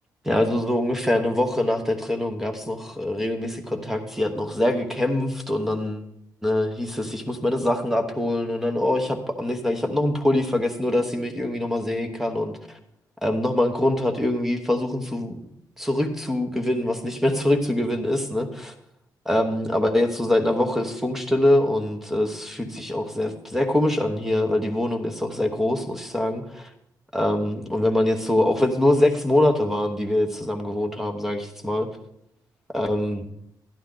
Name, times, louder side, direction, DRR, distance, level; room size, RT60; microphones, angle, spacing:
voice 1, 0.2-6.1 6.4-12.5 13.2-15.4 15.8-18.7 19.2-26.7 27.1-31.9 32.7-33.2, left 1 dB, 5° right, 5 dB, 1.1 m, -24 dB
12.0 x 11.0 x 3.8 m, 0.75 s
cardioid pair, 145°, 7 cm